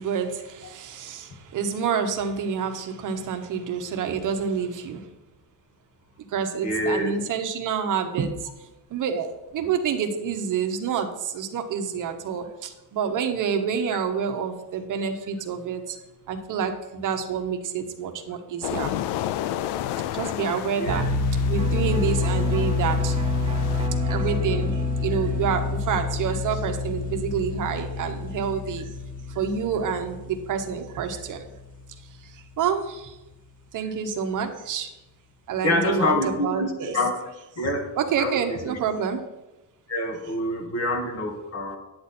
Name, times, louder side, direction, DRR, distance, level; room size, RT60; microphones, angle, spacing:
voice 1, 0.0-5.1 6.3-8.4 8.9-16.0 16.3-18.9 20.1-21.1 21.5-23.2 24.0-28.9 29.3-31.5 32.3-33.2 33.7-34.9 35.5-37.0 38.0-39.2, right 6 dB, 50° right, 6 dB, 1.0 m, -28 dB
voice 2, 6.6-7.1 9.6-9.7 20.8-21.0 24.7-24.8 35.6-37.2 37.6-37.9 38.2-38.8 39.9-41.8, left 1 dB, 40° left, 3 dB, 1.8 m, -26 dB
sound 1, 18.6-23.9, left 12 dB, 80° left, 0.6 m, -32 dB
sound 2, 20.8-31.7, left 4 dB, 20° left, 1.3 m, -27 dB
Electric guitar, 21.6-29.2, right 3 dB, 15° right, 0.8 m, -38 dB
10.0 x 8.7 x 4.3 m, 1.0 s
cardioid pair, 160°, 39 cm